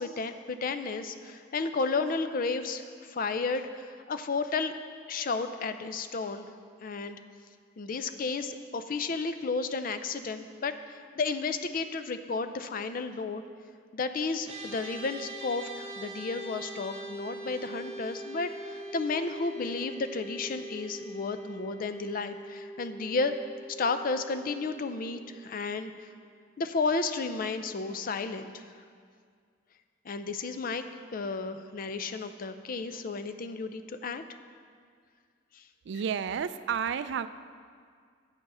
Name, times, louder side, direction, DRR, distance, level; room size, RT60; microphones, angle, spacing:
voice 1, 0.0-4.7 5.1-6.5 6.8-7.2 7.8-13.4 13.9-23.4 23.8-26.1 26.6-28.6 30.1-30.8 31.1-34.2 35.5-35.6, left 4 dB, 45° left, 9 dB, 0.4 m, -32 dB
sound 1, 14.4-25.9, right 1 dB, 30° right, 0.9 m, -43 dB
voice 2, 35.9-37.3, right 7 dB, 60° right, 13 dB, 0.3 m, -31 dB
8.8 x 6.9 x 5.5 m, 2.1 s
head